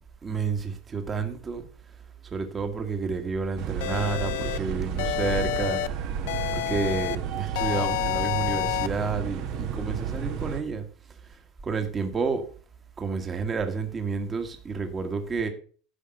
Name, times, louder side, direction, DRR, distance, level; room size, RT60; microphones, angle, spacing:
voice 1, 0.2-1.6 2.2-5.8 6.5-10.8 11.2-12.4 13.0-15.5, right 5 dB, 25° right, 1.5 m, -30 dB
sound 1, 3.6-10.6, right 8 dB, 65° right, 1.3 m, -32 dB
sound 2, 3.8-4.6 5.0-5.9 6.3-7.2 7.6-8.9, left 16 dB, 90° left, 0.6 m, -29 dB
10.0 x 5.2 x 6.4 m
supercardioid pair, 130°, 0 cm